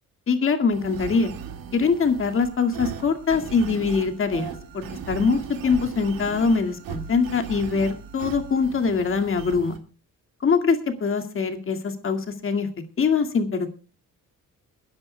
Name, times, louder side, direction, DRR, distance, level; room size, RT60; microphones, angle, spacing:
voice 1, 0.3-1.3 1.7-9.8 10.4-12.7 13.0-13.7, left 5 dB, 40° left, 6 dB, 2.2 m, -23 dB
sound 1, 0.7-9.8, right 7 dB, 90° right, 2.1 m, -38 dB
30.0 x 10.0 x 2.3 m, 0.32 s
cardioid pair, 130°, 33 cm